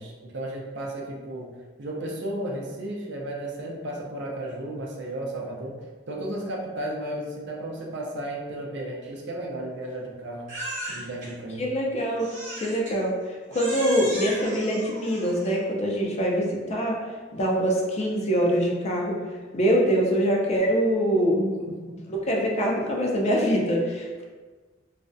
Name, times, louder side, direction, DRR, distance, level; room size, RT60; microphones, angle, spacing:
voice 1, 0.0-1.5 1.8-5.7 6.1-10.5 10.9-11.7 21.3-22.0, right 1 dB, 65° right, -1 dB, 0.5 m, -34 dB
Crying sobbing, 10.5-11.3 12.2-13.0 13.5-15.6, right 1 dB, 40° right, 0.9 m, -36 dB
voice 2, 11.6-13.2 13.5-17.0 17.3-19.2 19.5-21.4 22.1-24.2, equal, 35° left, -2 dB, 0.4 m, -24 dB
2.4 x 2.1 x 2.5 m, 1.4 s
head